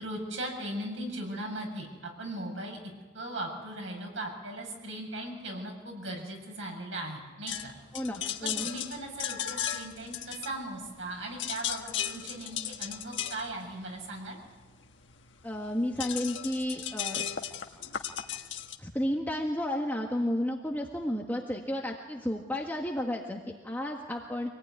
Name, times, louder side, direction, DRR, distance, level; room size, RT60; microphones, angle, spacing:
voice 1, 0.0-7.7 8.4-14.4, right 1 dB, 85° right, 1 dB, 7.3 m, -38 dB
sound 1, 7.5-11.0 11.3-18.8, left 9 dB, 75° left, 1.5 m, -36 dB
voice 2, 7.9-8.7 15.4-17.3 18.8-24.5, left 1 dB, 10° left, 0 dB, 1.5 m, -32 dB
25.5 x 18.5 x 9.6 m, 1.3 s
head